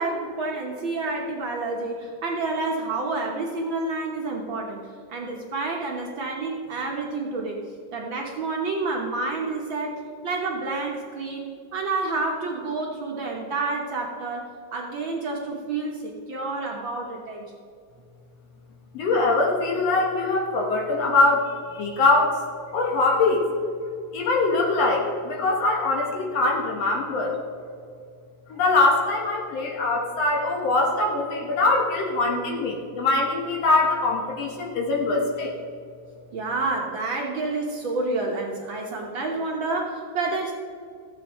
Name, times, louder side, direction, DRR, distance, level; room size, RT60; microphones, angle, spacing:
voice 1, 0.0-4.8 5.1-7.6 7.9-17.5 36.3-40.5, right 3 dB, 60° right, -1 dB, 1.3 m, -29 dB
voice 2, 18.9-22.4 22.7-23.5 24.1-27.4 28.5-35.5, left 3 dB, 60° left, -1 dB, 2.3 m, -22 dB
14.5 x 7.9 x 4.2 m, 2.3 s
omnidirectional pair, 3.4 m